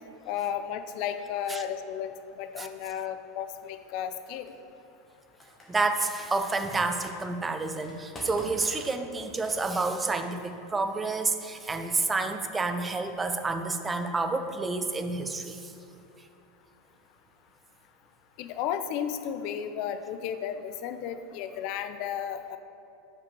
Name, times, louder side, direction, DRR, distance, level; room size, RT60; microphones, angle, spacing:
voice 1, 0.3-2.1 2.4-4.5 18.4-22.6, left 9 dB, 55° left, 10 dB, 0.4 m, -33 dB
Computer keyboard, 4.3-4.5 5.4-7.2 7.8-10.5, left 1 dB, 20° left, 1.4 m, -46 dB
voice 2, 5.7-15.7, right 3 dB, 15° right, 7 dB, 0.4 m, -29 dB
5.4 x 5.2 x 4.7 m, 2.6 s
supercardioid pair, 130°, 0 cm